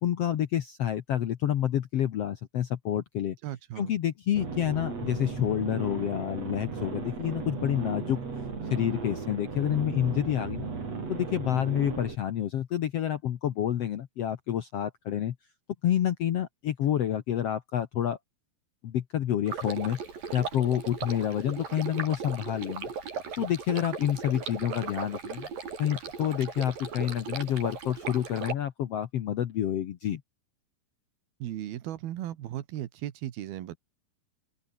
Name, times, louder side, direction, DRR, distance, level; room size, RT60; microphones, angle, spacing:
voice 1, 0.0-3.4 3.8-8.2 8.7-10.7 11.1-15.3 15.8-18.2 18.8-20.0 20.3-22.9 23.4-25.5 25.8-30.2, left 11 dB, 70° left, 1.5 m, -28 dB
voice 2, 3.4-3.9 31.4-33.8, right 13 dB, 90° right, 3.4 m, -36 dB
sound 1, 4.4-12.2, right 4 dB, 45° right, 5.5 m, -36 dB
Stream, 19.5-28.5, right 6 dB, 65° right, 6.0 m, -37 dB
open air
omnidirectional pair, 4.3 m